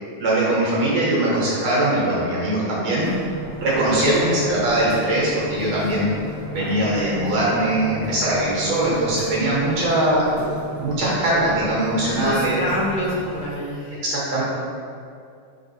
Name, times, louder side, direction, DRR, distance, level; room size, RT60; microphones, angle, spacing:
voice 1, 0.2-3.1 3.6-6.1 6.5-10.2 10.8-12.6 14.0-14.4, right 1 dB, 80° right, -7 dB, 1.9 m, -21 dB
sound 1, 3.0-13.5, right 1 dB, 25° right, 0.9 m, -35 dB
voice 2, 12.0-14.0, left 1 dB, 70° left, -5 dB, 1.5 m, -27 dB
3.9 x 3.5 x 2.7 m, 2.4 s
omnidirectional pair, 2.2 m